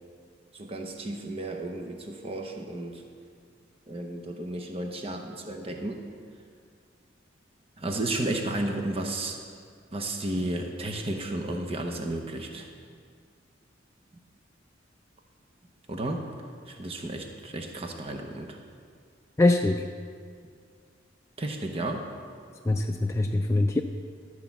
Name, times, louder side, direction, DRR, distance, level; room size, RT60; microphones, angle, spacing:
voice 1, 0.5-3.0 3.9-6.0 7.8-9.4 9.9-12.7 15.9-16.2 16.6-18.6 21.4-22.1, right 1 dB, 30° right, 2 dB, 0.8 m, -33 dB
voice 2, 19.4-19.9 22.6-23.8, left 2 dB, 15° left, 2 dB, 0.3 m, -23 dB
13.0 x 4.6 x 7.1 m, 2.1 s
head